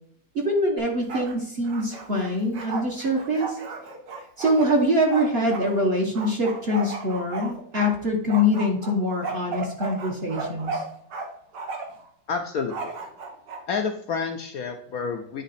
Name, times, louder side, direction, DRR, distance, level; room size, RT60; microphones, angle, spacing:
voice 1, 0.3-3.6 4.4-10.8, left 1 dB, 40° right, 1 dB, 1.0 m, -24 dB
Bark, 0.8-1.4 1.6-5.7 6.1-7.9 8.3-11.3 11.5-12.0 12.7-13.6, right 4 dB, 70° right, 1.7 m, -34 dB
voice 2, 12.3-12.9 13.7-15.4, left 5 dB, 70° left, 4 dB, 0.9 m, -29 dB
9.2 x 3.6 x 4.1 m, 0.68 s
omnidirectional pair, 2.0 m